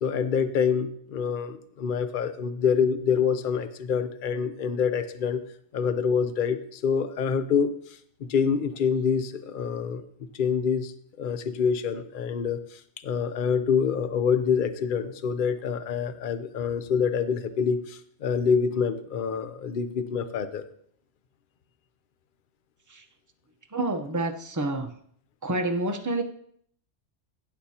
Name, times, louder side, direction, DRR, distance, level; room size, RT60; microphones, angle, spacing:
voice 1, 0.0-5.4 5.7-7.8 8.3-10.0 10.4-10.9 11.2-20.6, left 6 dB, 50° left, 11 dB, 0.8 m, -26 dB
voice 2, 23.7-24.9 25.4-26.2, right 2 dB, 15° right, 5 dB, 0.8 m, -28 dB
16.0 x 7.4 x 2.9 m, 0.63 s
omnidirectional pair, 1.3 m